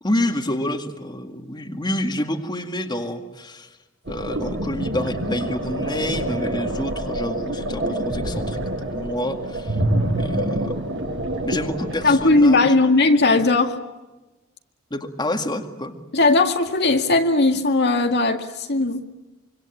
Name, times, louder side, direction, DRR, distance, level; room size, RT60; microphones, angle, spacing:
voice 1, 0.0-3.8 4.1-8.6 8.9-10.7 11.4-12.7 14.9-15.9, left 1 dB, 20° left, 5 dB, 2.0 m, -28 dB
Underwater sounds - loopable, 4.1-12.6, right 1 dB, 60° right, 6.3 m, -27 dB
voice 2, 12.0-13.8 16.1-19.0, left 2 dB, 50° left, 5 dB, 2.0 m, -18 dB
26.0 x 25.0 x 8.6 m, 1.1 s
head